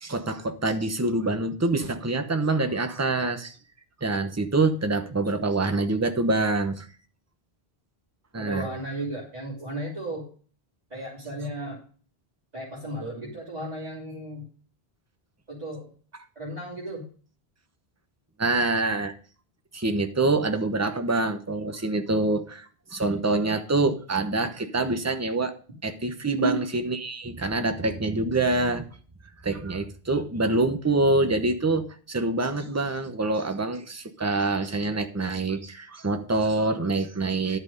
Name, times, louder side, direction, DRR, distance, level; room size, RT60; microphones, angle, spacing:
voice 1, 0.0-3.5 4.0-6.9 8.3-8.7 18.4-19.1 19.7-22.7 22.9-25.5 25.8-28.8 29.4-37.6, right 2 dB, 15° right, 7 dB, 1.0 m, -25 dB
voice 2, 8.3-10.3 10.9-11.8 12.5-14.4 15.5-15.9 16.3-17.0 26.4-26.6, right 1 dB, 40° right, -7 dB, 3.3 m, -34 dB
11.5 x 6.2 x 5.3 m, 0.41 s
omnidirectional pair, 1.1 m